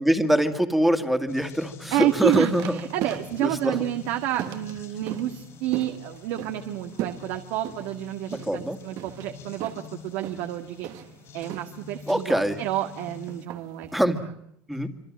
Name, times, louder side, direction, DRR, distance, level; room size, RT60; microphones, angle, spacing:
voice 1, 0.0-2.7 3.4-3.8 8.4-8.8 12.1-12.6 13.9-14.2 14.7-14.9, equal, ahead, 7 dB, 2.2 m, -23 dB
sound 1, 1.3-13.5, left 6 dB, 50° left, 3.9 m, -46 dB
sound 2, 1.9-14.2, right 12 dB, 65° right, 1.7 m, -39 dB
voice 2, 1.9-11.0 11.3-14.3 14.7-14.8, right 14 dB, 80° right, 5 dB, 1.9 m, -29 dB
26.0 x 25.5 x 7.5 m, 0.70 s
cardioid pair, 130°, 6 cm